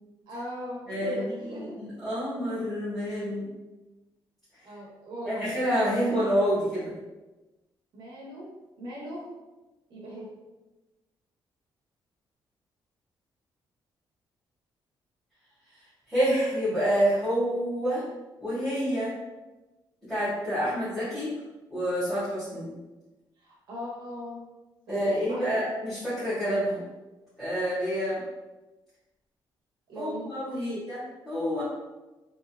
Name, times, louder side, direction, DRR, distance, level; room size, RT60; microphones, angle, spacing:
voice 1, 0.3-1.8 4.6-5.5 7.9-8.5 8.8-9.3 9.9-10.2 23.4-24.4 24.9-25.5 29.9-30.3 30.5-30.8, equal, 65° right, -4 dB, 1.0 m, -38 dB
voice 2, 0.9-1.2 1.6-3.5 5.2-7.0 16.1-18.0 18.4-19.1 20.1-21.3 21.7-22.7 24.9-26.8 27.4-28.2 29.9-31.6, equal, 5° left, -16 dB, 1.5 m, -28 dB
3.5 x 2.8 x 2.3 m, 1.1 s
cardioid pair, 180°, 9 cm